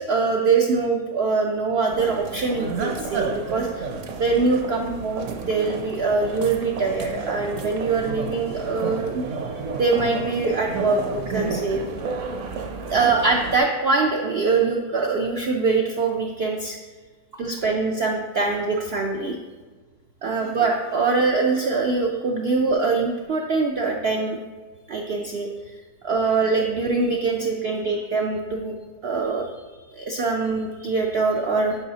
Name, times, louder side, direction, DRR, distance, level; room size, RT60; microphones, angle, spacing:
voice 1, 0.0-3.9 4.1-9.4 9.7-11.8 12.9-16.8 17.3-19.4 20.2-24.4 24.9-25.8 26.0-28.8 29.0-29.6 29.9-31.8, right 4 dB, 85° right, 1 dB, 0.5 m, -23 dB
sound 1, 1.9-13.6, right 4 dB, 60° right, 0.8 m, -31 dB
10.0 x 4.7 x 2.8 m, 1.3 s
omnidirectional pair, 1.7 m